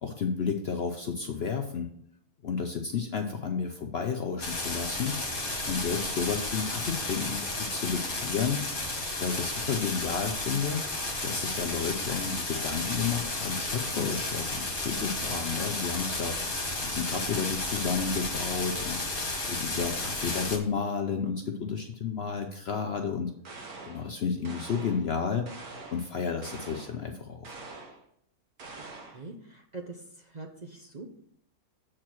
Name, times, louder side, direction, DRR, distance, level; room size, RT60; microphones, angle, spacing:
voice 1, 0.0-1.9 2.4-5.2 5.7-8.6 9.2-10.8 11.2-16.4 16.8-19.0 19.5-23.3 23.9-25.5 25.9-27.5, left 6 dB, 55° left, 4 dB, 0.7 m, -31 dB
sound 1, 4.4-20.6, left 2 dB, 35° left, 1.8 m, -33 dB
sound 2, 23.4-24.1 24.4-25.1 25.5-26.1 26.4-27.0 27.4-28.0 28.6-29.2, right 3 dB, 70° right, 1.8 m, -44 dB
voice 2, 29.1-30.0 30.3-31.2, right 3 dB, 40° right, 0 dB, 0.7 m, -43 dB
7.5 x 4.5 x 6.1 m, 0.69 s
omnidirectional pair, 1.6 m